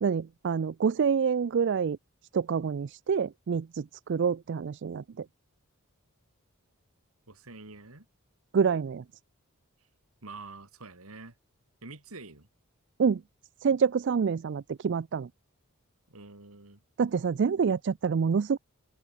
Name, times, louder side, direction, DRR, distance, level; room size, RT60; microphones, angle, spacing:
voice 1, 0.0-2.0 2.3-5.2 8.5-9.0 13.0-13.2 13.6-15.3 17.0-18.6, right 6 dB, 55° right, 0.4 m, -27 dB
voice 2, 7.3-8.1 10.2-11.4 11.8-12.5 16.1-16.8, right 3 dB, 85° right, 3.1 m, -46 dB
head